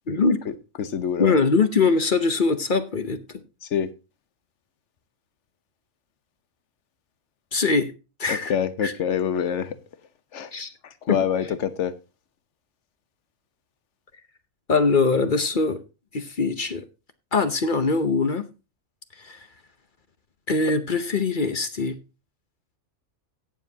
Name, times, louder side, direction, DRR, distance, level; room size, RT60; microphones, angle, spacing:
voice 1, 0.1-0.4 1.2-3.2 7.5-7.9 8.2-8.5 8.8-8.9 10.5-10.7 11.1-11.2 14.7-15.8 16.1-16.8 17.3-18.5 19.2-19.4 20.5-21.9, left 4 dB, 40° left, 0.9 m, -22 dB
voice 2, 0.8-1.4 3.7-3.9 8.3-9.8 10.3-10.5 11.0-11.9, left 8 dB, 60° left, 1.2 m, -25 dB
17.5 x 7.2 x 2.8 m
omnidirectional pair, 1.4 m